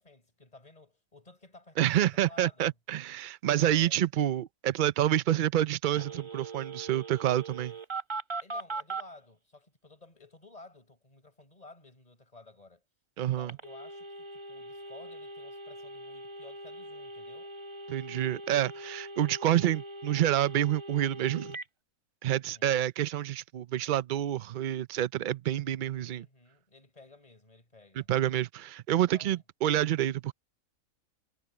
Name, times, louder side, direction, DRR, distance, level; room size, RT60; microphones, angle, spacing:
voice 1, 0.0-1.9 2.3-2.7 3.5-4.1 8.4-12.8 13.2-17.5 22.2-22.8 25.9-28.1 28.9-29.4, left 2 dB, 25° left, 4.8 m, -54 dB
voice 2, 1.8-7.7 13.2-13.5 17.9-21.6 22.2-26.3 28.0-30.3, right 12 dB, 60° right, 0.5 m, -28 dB
Telephone, 5.9-9.0 13.5-21.7, right 2 dB, 25° right, 0.9 m, -41 dB
omnidirectional pair, 1.5 m